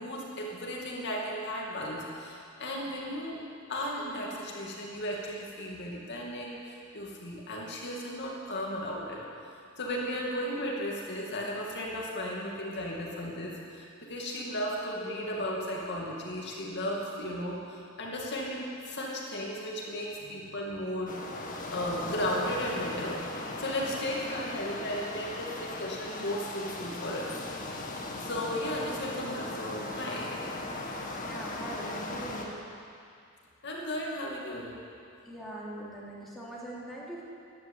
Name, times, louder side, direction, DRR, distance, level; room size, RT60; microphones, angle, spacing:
voice 1, 0.0-3.4 3.7-9.2 9.8-21.2 21.7-23.2 23.6-27.3 28.2-30.4 33.6-34.7, equal, 55° left, -3 dB, 2.5 m, -35 dB
sound 1, 21.1-32.4, left 2 dB, 40° left, 1.7 m, -38 dB
voice 2, 31.2-32.5 35.2-37.2, right 1 dB, ahead, -7 dB, 3.1 m, -41 dB
13.5 x 11.5 x 8.5 m, 2.4 s
head